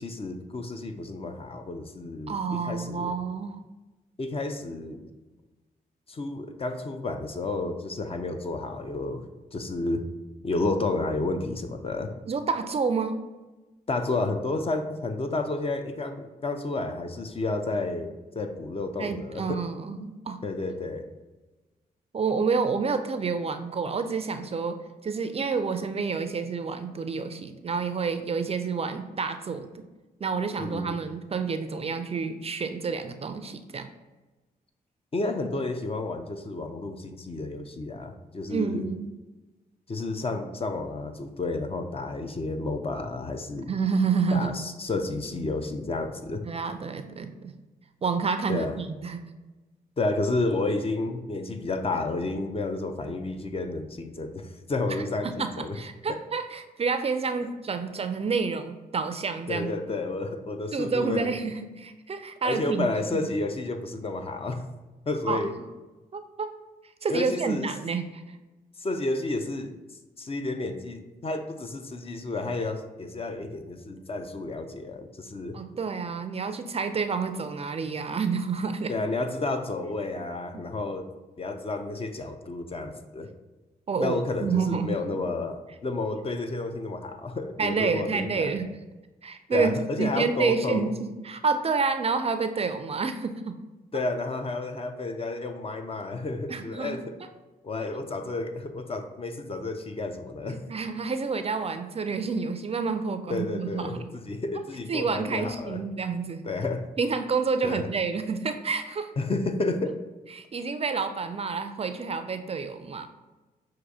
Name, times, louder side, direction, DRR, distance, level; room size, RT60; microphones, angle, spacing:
voice 1, 0.0-3.1 4.2-5.1 6.1-9.2 9.5-10.1 10.4-12.1 13.9-19.6 20.4-21.1 30.6-31.0 35.1-38.8 39.9-43.7 44.3-46.4 48.5-48.8 50.0-55.8 59.5-61.3 62.4-64.6 65.1-65.5 67.1-67.7 68.8-69.7 70.2-75.6 78.9-81.1 81.4-83.3 84.0-88.5 89.5-90.9 93.9-97.1 97.6-100.6 103.3-105.8 106.4-106.9 107.6-107.9 109.2-110.0, left 2 dB, 35° left, 7 dB, 0.5 m, -31 dB
voice 2, 2.3-3.6 12.3-13.2 19.0-20.4 22.1-24.8 25.0-29.8 30.2-33.9 38.5-39.1 43.7-44.6 46.4-47.5 48.0-49.2 54.9-59.7 60.7-63.3 65.3-65.5 66.1-66.6 67.0-68.2 75.5-78.9 83.9-85.0 87.6-88.7 89.2-93.6 96.5-97.0 100.7-104.1 104.9-106.5 107.0-109.1 110.3-113.1, right 5 dB, 35° right, 8 dB, 0.4 m, -29 dB
5.9 x 2.5 x 2.7 m, 1.1 s
supercardioid pair, 50°, 17 cm